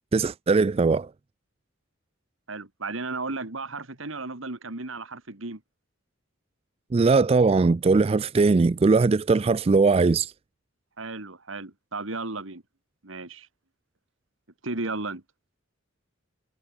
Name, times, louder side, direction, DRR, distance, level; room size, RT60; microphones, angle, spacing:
voice 1, 0.1-1.1 6.9-10.3, right 4 dB, 30° right, 0.3 m, -20 dB
voice 2, 2.5-5.6 11.0-12.6 13.0-13.5 14.6-15.2, right 3 dB, 80° right, 2.2 m, -34 dB
head